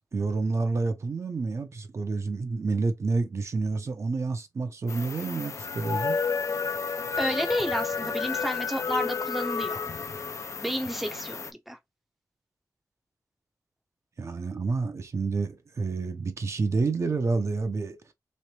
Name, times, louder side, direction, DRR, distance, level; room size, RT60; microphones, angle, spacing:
voice 1, 0.1-6.2 14.2-18.0, right 3 dB, 50° right, 0.7 m, -29 dB
sound 1, 4.9-11.5, left 5 dB, 50° left, 0.4 m, -31 dB
voice 2, 7.2-9.9 10.6-11.8, equal, ahead, 0.6 m, -31 dB
3.2 x 3.1 x 2.9 m
wide cardioid pair, 150°, 6 cm